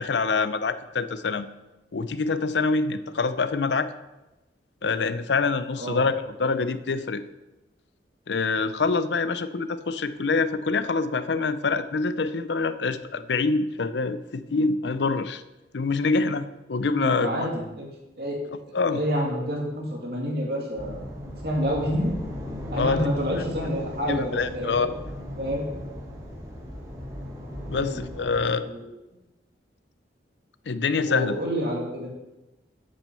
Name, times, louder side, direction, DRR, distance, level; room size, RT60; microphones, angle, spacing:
voice 1, 0.0-1.5 1.9-3.9 4.8-6.1 6.4-7.2 8.3-15.4 15.7-17.5 18.7-19.0 22.7-23.1 24.1-24.9 27.7-28.7 30.7-31.4, left 4 dB, 80° left, 13 dB, 0.6 m, -25 dB
voice 2, 16.9-17.9 18.2-18.4 18.9-21.0 21.4-22.2 22.7-24.9 25.4-25.7 27.7-28.0 28.6-28.8 31.0-32.1, equal, 60° right, -2 dB, 2.5 m, -28 dB
sound 1, 20.7-28.5, equal, 20° right, 3.4 m, -37 dB
8.4 x 6.2 x 6.9 m, 1.0 s
head